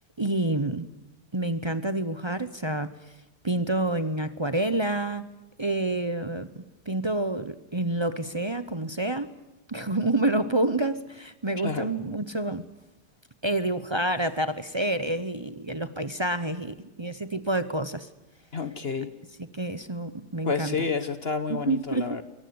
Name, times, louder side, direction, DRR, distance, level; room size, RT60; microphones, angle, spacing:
voice 1, 0.2-0.9 1.3-2.9 3.4-5.3 5.6-9.3 9.7-12.6 13.4-18.1 19.5-20.9 21.5-22.2, right 2 dB, 30° right, 0.5 m, -28 dB
voice 2, 11.6-11.9 18.5-19.1 20.4-22.2, left 5 dB, 40° left, 1.1 m, -29 dB
23.5 x 18.5 x 9.5 m
omnidirectional pair, 1.8 m